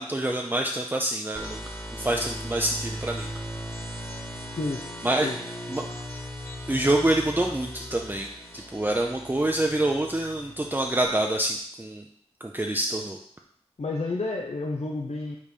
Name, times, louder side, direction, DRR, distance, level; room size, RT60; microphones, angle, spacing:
voice 1, 0.0-1.6 2.0-3.3 5.0-5.3 5.7-5.8 6.7-8.3 8.5-12.0 12.4-13.2, right 1 dB, 20° right, 1 dB, 0.5 m, -26 dB
sound 1, 1.3-11.0, equal, 25° left, 1.2 m, -38 dB
voice 2, 13.8-15.4, left 3 dB, 80° left, 0 dB, 0.6 m, -30 dB
5.0 x 4.1 x 5.2 m, 0.69 s
wide cardioid pair, 45°, 11 cm